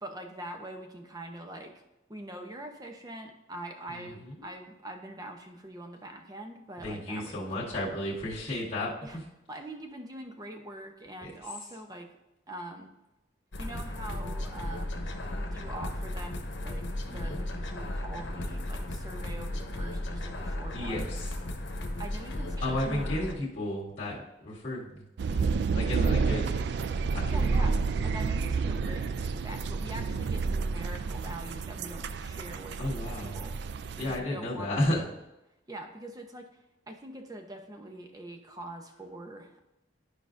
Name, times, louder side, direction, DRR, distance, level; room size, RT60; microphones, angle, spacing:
voice 1, 0.0-1.7 2.1-8.1 9.0-9.2 9.5-12.2 12.5-12.9 13.6-15.1 15.4-21.1 22.0-23.3 27.3-27.7 28.0-33.6 34.0-35.1 35.7-36.5 36.9-39.6, right 1 dB, 20° right, 4 dB, 0.7 m, -43 dB
voice 2, 3.9-4.5 6.8-9.2 11.2-11.3 17.1-17.4 20.7-21.3 22.6-26.5 27.1-27.7 32.8-33.4 34.0-35.0, left 1 dB, 35° left, -7 dB, 1.9 m, -33 dB
sound 1, 13.5-23.3, left 1 dB, 90° left, 1.0 m, -35 dB
sound 2, 25.2-34.2, right 4 dB, 60° right, 0.3 m, -30 dB
11.5 x 4.9 x 2.6 m, 0.94 s
head